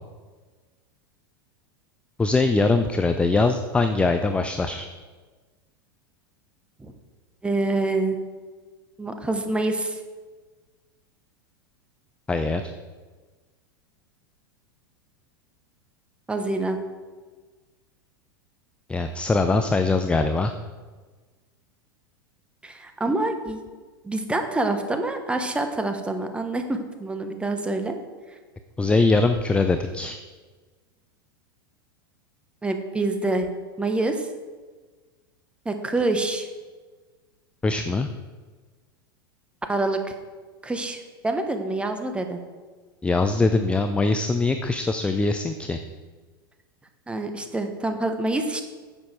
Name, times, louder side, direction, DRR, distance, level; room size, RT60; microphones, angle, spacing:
voice 1, 2.2-4.9 12.3-12.6 18.9-20.5 28.8-30.2 37.6-38.1 43.0-45.8, left 3 dB, 10° left, 8 dB, 0.5 m, -22 dB
voice 2, 7.4-8.2 9.0-10.0 16.3-16.8 22.6-23.6 24.0-27.9 32.6-33.5 33.8-34.3 35.6-36.5 39.7-40.0 40.6-42.4 47.1-48.6, right 2 dB, 10° right, 6 dB, 1.2 m, -26 dB
10.0 x 7.4 x 4.9 m, 1.4 s
figure-of-eight pair, 90°, 12 cm